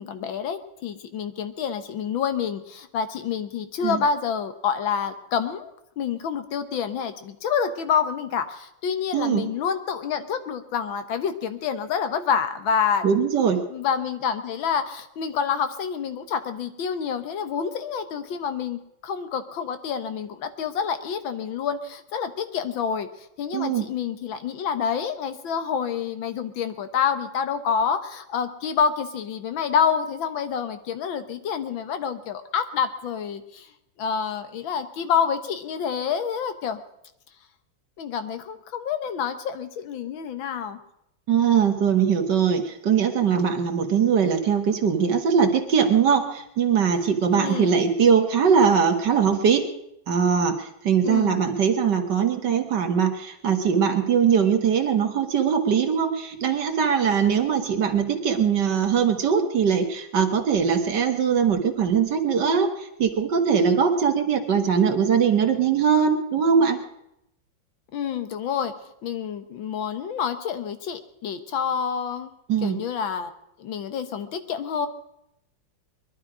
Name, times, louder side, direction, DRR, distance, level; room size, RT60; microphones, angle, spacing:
voice 1, 0.0-5.7 6.0-13.0 13.7-23.1 23.4-33.7 34.0-36.8 38.0-40.8 47.3-47.8 51.0-51.4 67.9-68.7 69.0-72.3 72.6-73.3 73.6-74.9, left 7 dB, 90° left, 9 dB, 1.9 m, -27 dB
voice 2, 9.1-9.5 13.0-13.6 23.5-23.9 41.3-49.6 50.1-66.8 72.5-72.8, right 7 dB, 65° right, 6 dB, 2.0 m, -21 dB
21.5 x 12.0 x 4.9 m, 0.81 s
omnidirectional pair, 2.1 m